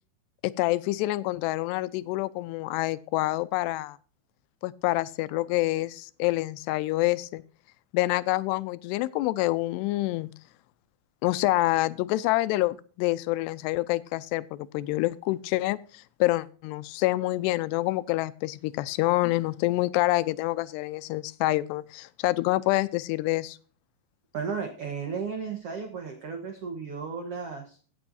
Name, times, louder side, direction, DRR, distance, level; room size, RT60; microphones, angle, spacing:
voice 1, 0.4-4.0 4.6-7.4 7.9-10.3 11.2-23.6, left 18 dB, 90° left, 16 dB, 2.7 m, -27 dB
voice 2, 24.3-27.8, right 5 dB, 80° right, 3 dB, 1.3 m, -34 dB
16.5 x 7.7 x 2.7 m, 0.42 s
omnidirectional pair, 4.7 m